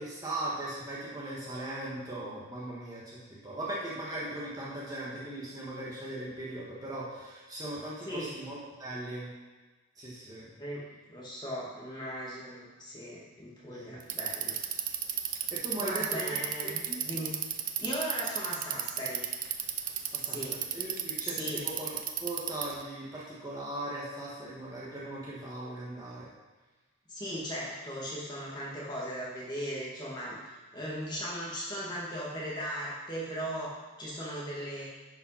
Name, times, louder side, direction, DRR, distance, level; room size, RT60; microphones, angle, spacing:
voice 1, 0.0-3.2 3.4-9.3 9.9-10.5 13.6-14.0 15.5-16.4 16.6-17.0 20.1-20.4 20.7-26.3, right 1 dB, 15° right, -7 dB, 1.8 m, -39 dB
voice 2, 10.6-14.6 15.7-17.4 17.8-19.2 20.2-20.5 21.2-21.6 27.1-33.7 34.0-34.8, equal, 20° left, -6 dB, 2.2 m, -38 dB
Bicycle, 14.0-22.8, right 10 dB, 40° right, 0.6 m, -33 dB
10.5 x 5.7 x 5.8 m, 1.3 s
head